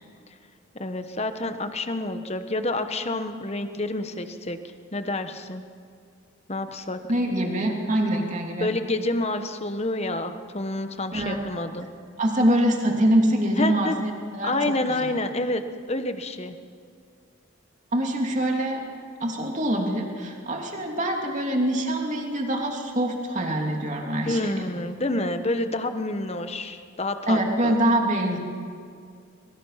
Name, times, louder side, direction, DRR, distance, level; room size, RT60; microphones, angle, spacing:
voice 1, 0.7-4.6 4.9-5.6 6.5-7.0 8.6-11.9 13.6-14.0 14.4-15.6 15.9-16.6 24.2-27.7, left 2 dB, 30° left, 8 dB, 1.2 m, -28 dB
voice 2, 7.1-8.7 11.1-11.4 12.2-14.7 17.9-18.8 19.2-24.7 27.3-28.4, right 1 dB, 35° right, 1 dB, 3.0 m, -24 dB
26.0 x 23.0 x 5.9 m, 2.3 s
head